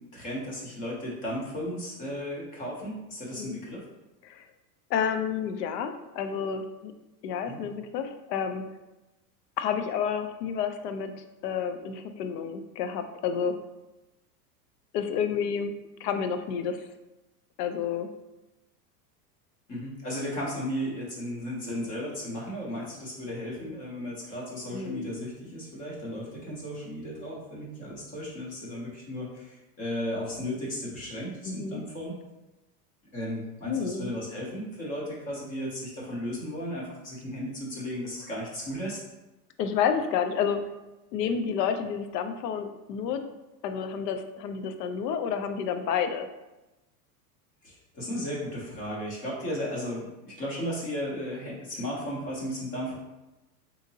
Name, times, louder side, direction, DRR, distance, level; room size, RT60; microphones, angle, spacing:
voice 1, 0.0-3.9 7.5-7.6 19.7-32.1 33.1-39.0 47.6-53.0, equal, 20° left, -3 dB, 0.4 m, -35 dB
voice 2, 4.9-6.9 7.2-8.6 9.6-13.6 14.9-15.7 16.0-16.8 17.6-18.1 24.7-25.1 31.5-31.8 33.6-34.1 39.6-40.6 41.1-43.2 43.6-46.3, left 7 dB, 80° left, 8 dB, 0.6 m, -30 dB
3.6 x 2.8 x 2.7 m, 1.0 s
supercardioid pair, 150°, 47 cm